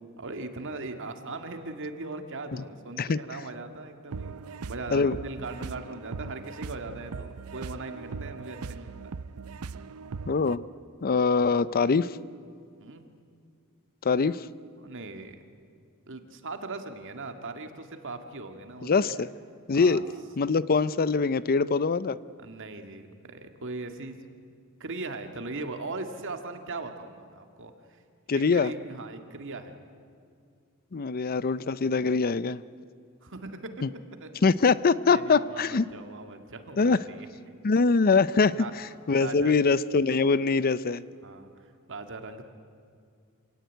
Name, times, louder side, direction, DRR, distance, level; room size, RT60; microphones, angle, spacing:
voice 1, 0.2-9.1 12.8-13.0 14.8-15.4 16.1-19.2 19.7-20.0 22.4-24.3 24.8-28.0 28.3-29.7 33.2-34.4 35.1-37.3 38.5-38.7 39.1-39.6 41.2-42.4, right 3 dB, 60° right, 7 dB, 1.9 m, -39 dB
sound 1, 4.1-10.6, right 4 dB, 85° right, 0.6 m, -39 dB
voice 2, 10.3-10.6 11.0-12.2 14.0-14.5 18.8-19.3 19.7-20.0 20.4-22.2 28.3-28.7 30.9-32.6 33.8-33.9 34.4-35.8 36.8-37.0 37.6-38.6 39.1-41.0, left 4 dB, 45° left, 17 dB, 0.5 m, -23 dB
26.5 x 17.5 x 9.3 m, 2.3 s
head